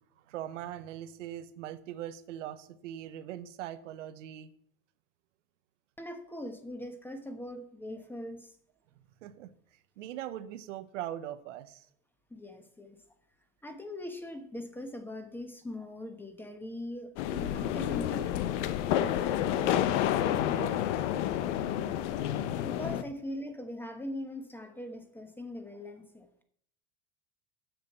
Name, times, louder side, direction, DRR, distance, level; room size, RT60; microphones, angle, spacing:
voice 1, 0.3-4.5 9.2-9.5 10.0-11.9 19.5-20.8, right 12 dB, 90° right, 12 dB, 0.9 m, -41 dB
voice 2, 6.0-8.5 12.3-13.0 13.6-18.3 22.6-26.4, left 1 dB, 5° left, 7 dB, 1.2 m, -41 dB
sound 1, 17.2-23.0, left 11 dB, 75° left, 0.8 m, -29 dB
7.8 x 6.4 x 6.8 m, 0.67 s
supercardioid pair, 110°, 36 cm